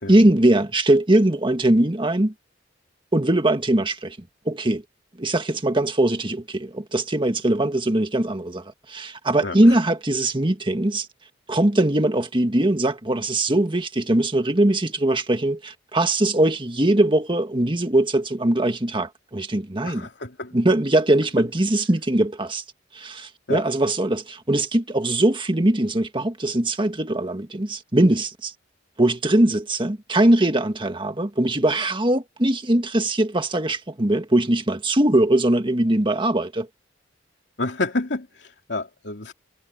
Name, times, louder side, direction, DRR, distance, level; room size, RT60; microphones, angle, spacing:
voice 1, 0.1-2.3 3.1-4.2 4.4-4.8 5.2-11.1 11.5-20.1 20.5-22.6 22.9-28.5 29.0-36.7, right 1 dB, 25° right, 1.7 m, -21 dB
voice 2, 19.8-20.5 23.5-23.6 37.6-39.3, left 2 dB, 65° left, 3.2 m, -29 dB
head